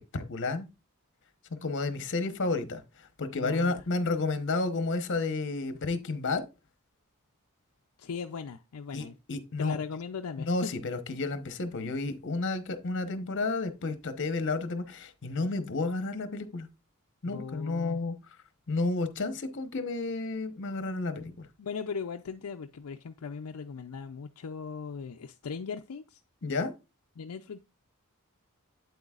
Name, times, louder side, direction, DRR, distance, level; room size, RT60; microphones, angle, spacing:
voice 1, 0.1-0.7 1.6-2.8 3.2-6.5 8.9-9.8 10.4-16.7 17.2-18.1 18.7-21.4 26.4-26.7, left 3 dB, 55° left, 1.0 m, -31 dB
voice 2, 3.3-3.7 8.0-9.1 9.6-10.7 17.2-18.0 21.6-26.2 27.2-27.6, left 5 dB, 75° left, 0.5 m, -38 dB
8.4 x 7.9 x 2.4 m
head